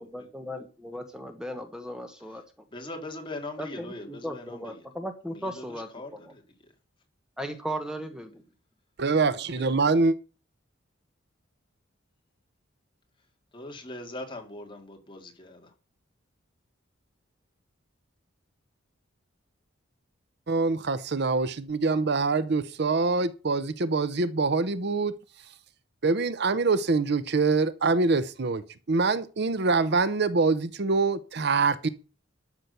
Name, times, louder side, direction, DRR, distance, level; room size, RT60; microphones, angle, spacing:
voice 1, 0.0-2.4 3.6-6.3 7.4-8.4, equal, 5° right, 1.3 m, -37 dB
voice 2, 2.7-4.8 5.3-6.7 9.6-10.0 13.5-15.7, left 2 dB, 25° left, 2.3 m, -41 dB
voice 3, 9.0-10.1 20.5-25.1 26.0-28.6 28.9-31.9, right 3 dB, 55° right, 0.7 m, -24 dB
12.0 x 6.2 x 6.8 m
head